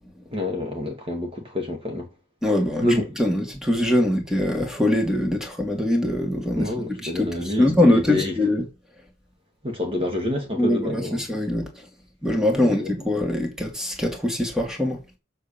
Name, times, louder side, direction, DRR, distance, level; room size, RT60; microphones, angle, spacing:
voice 1, 0.3-2.1 2.8-3.2 6.6-8.4 9.6-11.2 12.6-12.9, left 1 dB, 25° right, 2.1 m, -27 dB
voice 2, 2.4-2.9 3.2-6.7 7.0-8.6 10.6-11.8 12.2-15.0, left 1 dB, 5° right, 2.3 m, -23 dB
7.5 x 6.3 x 7.3 m
head